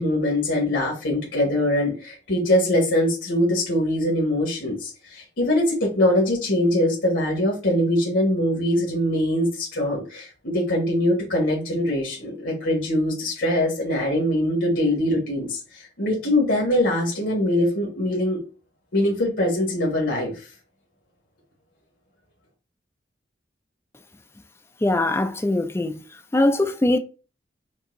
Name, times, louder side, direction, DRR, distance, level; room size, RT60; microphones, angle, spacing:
voice 1, 0.0-18.4 18.9-20.5, left 1 dB, 85° left, 1.5 m, -23 dB
voice 2, 24.8-26.0 26.3-27.0, left 1 dB, 15° left, 0.4 m, -21 dB
5.3 x 2.8 x 2.6 m
head